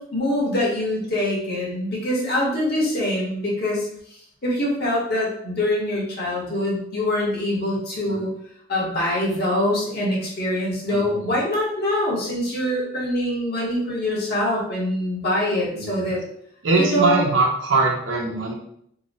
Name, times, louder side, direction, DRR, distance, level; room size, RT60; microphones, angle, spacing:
voice 1, 0.0-3.9 4.4-8.3 8.7-16.2 16.8-17.2, left 1 dB, 55° left, -4 dB, 1.1 m, -24 dB
voice 2, 10.9-11.4 15.7-16.1 16.6-18.5, right 3 dB, 70° right, 0 dB, 0.8 m, -22 dB
2.9 x 2.1 x 4.0 m, 0.70 s
head